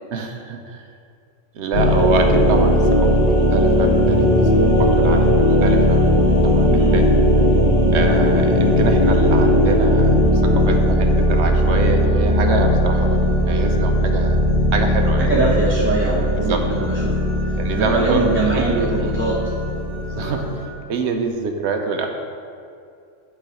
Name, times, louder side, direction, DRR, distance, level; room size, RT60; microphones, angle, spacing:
voice 1, 0.1-0.9 1.5-7.1 7.9-14.4 14.7-15.3 16.4-16.7 17.6-18.3 18.5-19.1 20.0-20.4 20.9-22.1, right 4 dB, 70° right, 4 dB, 1.0 m, -26 dB
sound 1, 1.7-20.6, equal, 45° left, 1.8 m, -17 dB
voice 2, 6.7-7.0 15.2-17.3 17.7-19.4 20.2-20.4, right 2 dB, 10° right, -6 dB, 0.7 m, -22 dB
9.2 x 3.9 x 4.9 m, 2.3 s
omnidirectional pair, 1.3 m